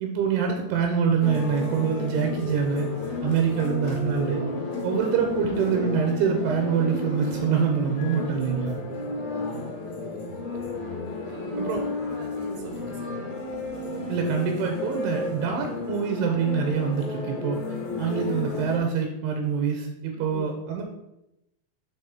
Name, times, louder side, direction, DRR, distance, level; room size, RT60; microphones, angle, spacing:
voice 1, 0.0-2.9 3.2-4.4 4.8-8.8 11.6-11.8 14.1-17.6 18.0-20.8, right 6 dB, 85° right, 3 dB, 2.7 m, -25 dB
sound 1, 1.2-18.8, left 3 dB, 65° left, 1.6 m, -32 dB
voice 2, 9.0-10.6 11.3-13.4 20.1-20.6, right 4 dB, 70° right, 2 dB, 2.4 m, -44 dB
6.2 x 4.8 x 4.4 m, 0.88 s
omnidirectional pair, 4.6 m